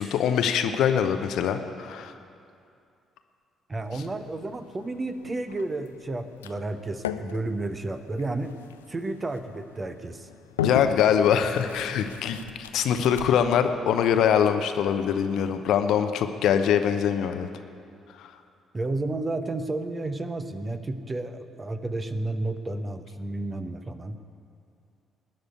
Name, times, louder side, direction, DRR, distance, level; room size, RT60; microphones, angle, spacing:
voice 1, 0.0-2.1 10.6-12.4 12.7-17.5 18.2-18.3, left 8 dB, 55° left, 8 dB, 0.8 m, -23 dB
voice 2, 3.7-8.5 8.9-10.3 18.7-24.2, right 2 dB, 25° right, 9 dB, 1.0 m, -31 dB
sound 1, 3.8-13.6, left 9 dB, 75° left, 0.4 m, -38 dB
19.0 x 6.5 x 9.3 m, 2.5 s
figure-of-eight pair, 45°, 0 cm